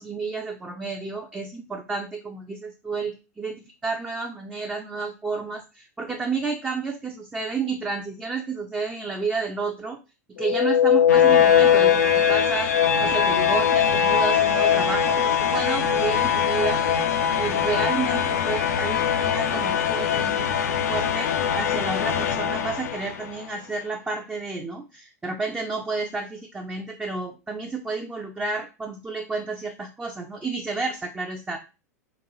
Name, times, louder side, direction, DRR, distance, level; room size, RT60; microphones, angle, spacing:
voice 1, 0.0-10.0 10.4-12.7 13.0-16.8 17.4-31.6, right 4 dB, 10° right, 2 dB, 0.5 m, -31 dB
sound 1, 10.4-23.4, left 8 dB, 70° left, 0.5 m, -21 dB
3.9 x 2.5 x 3.0 m, 0.29 s
figure-of-eight pair, 90°, 9 cm